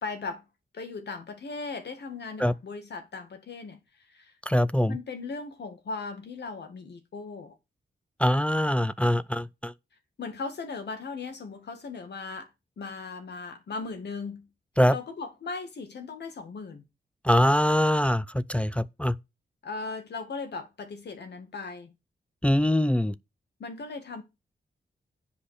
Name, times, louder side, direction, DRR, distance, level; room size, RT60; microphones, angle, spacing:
voice 1, 0.0-0.4 0.7-3.8 4.1-4.3 4.9-7.6 10.2-12.5 12.8-14.5 14.9-16.8 19.6-21.9 23.6-24.2, left 4 dB, 75° left, 2.0 m, -38 dB
voice 2, 4.5-5.0 8.2-9.7 14.8-14.9 17.2-19.2 22.4-23.1, left 1 dB, 5° left, 0.4 m, -23 dB
8.0 x 5.1 x 6.5 m
cardioid pair, 75°, 18 cm